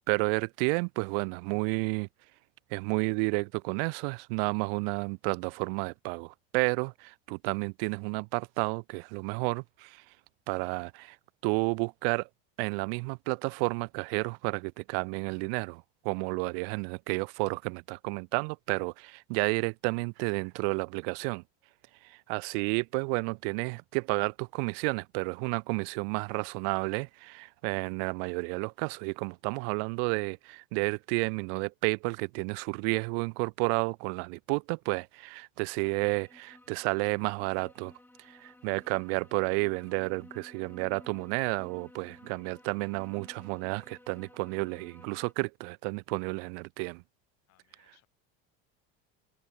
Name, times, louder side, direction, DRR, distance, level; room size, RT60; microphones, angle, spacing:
voice 1, 0.1-2.1 2.7-10.0 10.5-11.2 11.4-12.3 12.6-21.4 22.0-37.9 38.2-47.0, right 38 dB, 70° right, 0.5 m, -31 dB
sound 1, 35.7-45.3, left 1 dB, 5° left, 3.4 m, -55 dB
voice 2, 47.5-48.1, left 17 dB, 55° left, 6.8 m, -67 dB
supercardioid pair, 110°, 31 cm